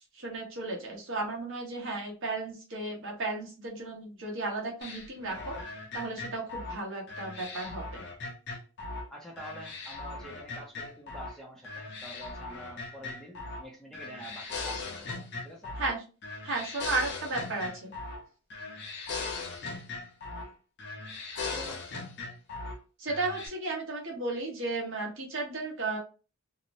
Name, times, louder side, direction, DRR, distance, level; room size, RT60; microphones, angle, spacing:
voice 1, 0.1-5.5 5.9-8.0 15.8-16.0 16.4-17.9 23.0-26.0, right 3 dB, 60° right, -1 dB, 1.0 m, -34 dB
sound 1, 4.8-9.1 9.4-11.3 11.6-13.7 13.9-16.0 16.2-18.2 18.5-20.5 20.8-22.8 23.1-23.5, left 3 dB, 50° left, 0.6 m, -39 dB
voice 2, 9.1-15.7 21.4-21.8, equal, ahead, -1 dB, 0.5 m, -47 dB
2.8 x 2.0 x 2.5 m, 0.34 s
head